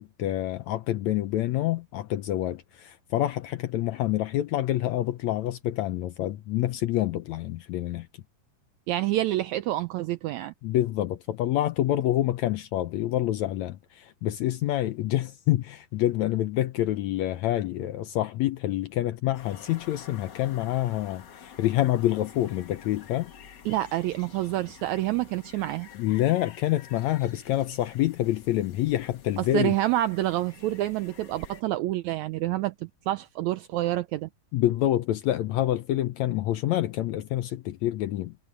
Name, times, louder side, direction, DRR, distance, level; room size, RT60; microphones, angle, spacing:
voice 1, 0.0-8.1 10.6-23.3 26.0-29.7 34.5-38.3, left 14 dB, 75° left, 1.7 m, -27 dB
voice 2, 8.9-10.5 23.6-25.9 29.4-34.3, right 15 dB, 80° right, 1.6 m, -28 dB
sound 1, 19.3-31.6, left 7 dB, 55° left, 1.2 m, -49 dB
omnidirectional pair, 3.8 m